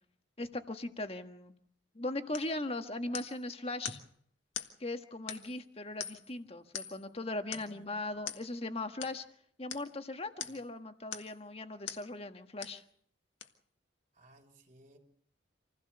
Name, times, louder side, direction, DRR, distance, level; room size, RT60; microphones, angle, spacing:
voice 1, 0.4-1.5 1.9-4.0 4.8-9.2 9.6-12.8, left 2 dB, 30° left, 7 dB, 1.5 m, -39 dB
sound 1, 2.3-2.6 3.1-3.4 3.8-4.1 4.5-4.8 5.3-5.6 6.0-6.3 6.7-7.1 7.5-7.8 8.3-8.5 9.0-9.2 9.7-9.9 10.4-10.7 11.1-11.4 11.9-12.1 12.6-12.8 13.4-13.5, left 9 dB, 70° left, 1.8 m, -42 dB
voice 2, 7.5-7.9 14.1-15.0, right 2 dB, 40° right, 1 dB, 3.6 m, -59 dB
27.0 x 16.5 x 6.9 m, 0.64 s
head